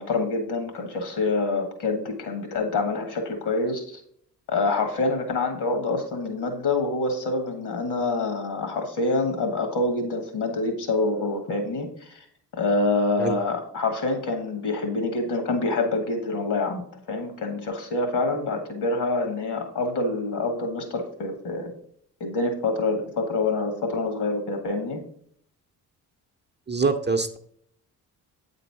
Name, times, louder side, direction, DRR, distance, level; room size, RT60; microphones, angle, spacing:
voice 1, 0.0-4.0 4.5-12.2 12.5-16.8 17.1-21.7 22.2-25.0, left 3 dB, 60° left, 6 dB, 1.9 m, -26 dB
voice 2, 26.7-27.4, right 4 dB, 25° right, 5 dB, 0.7 m, -24 dB
8.3 x 3.9 x 4.8 m, 0.66 s
hypercardioid pair, 45°, 44 cm